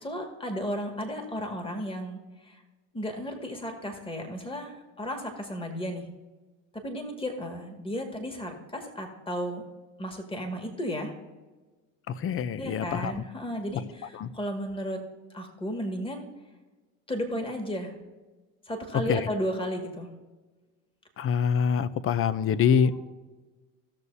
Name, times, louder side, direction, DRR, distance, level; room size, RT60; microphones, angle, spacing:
voice 1, 0.0-2.6 2.9-6.1 6.7-9.6 10.0-11.1 12.6-15.0 15.3-16.2 17.1-17.9 18.7-20.1 22.8-23.0, equal, 15° left, 3 dB, 2.0 m, -34 dB
voice 2, 12.1-13.1 14.2-14.3 19.1-19.2 21.2-23.1, left 7 dB, 35° left, 16 dB, 0.7 m, -25 dB
17.0 x 6.7 x 2.8 m, 1.3 s
hypercardioid pair, 85°, 38 cm